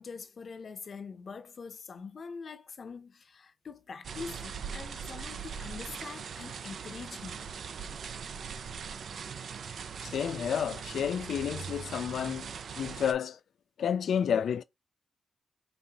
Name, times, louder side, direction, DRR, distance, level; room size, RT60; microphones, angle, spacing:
voice 1, 0.0-7.4, left 5 dB, 60° left, 0.8 m, -44 dB
sound 1, 4.0-13.1, right 6 dB, 75° right, 0.5 m, -40 dB
voice 2, 10.0-12.5 12.8-13.4 13.8-14.6, left 8 dB, 85° left, 0.3 m, -30 dB
5.2 x 2.7 x 2.9 m
cardioid pair, 85°, 0 cm